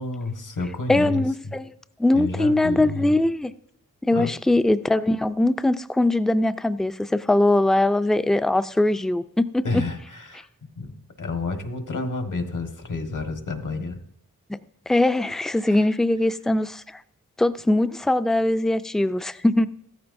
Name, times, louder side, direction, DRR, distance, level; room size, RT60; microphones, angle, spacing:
voice 1, 0.0-1.5 2.1-3.1 4.1-4.3 9.6-10.5 10.8-14.0 15.7-15.9, left 3 dB, 70° left, 6 dB, 1.4 m, -30 dB
voice 2, 0.9-1.7 2.0-3.5 4.0-9.7 14.9-17.0 17.4-19.7, left 2 dB, ahead, 13 dB, 0.3 m, -21 dB
15.0 x 13.5 x 2.6 m, 0.73 s
wide cardioid pair, 105°, 33 cm